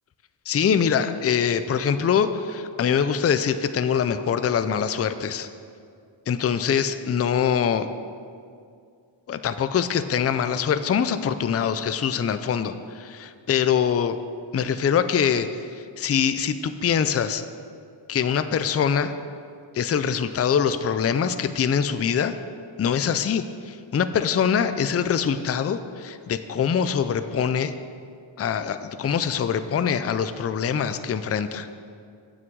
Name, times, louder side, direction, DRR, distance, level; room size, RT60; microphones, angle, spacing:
voice 1, 0.5-5.5 6.3-7.9 9.3-14.2 14.5-17.4 18.1-19.1 19.7-22.3 22.8-27.7 28.4-31.7, left 7 dB, 35° left, 11 dB, 0.4 m, -24 dB
15.5 x 6.2 x 4.6 m, 2.3 s
wide cardioid pair, 155°, 48 cm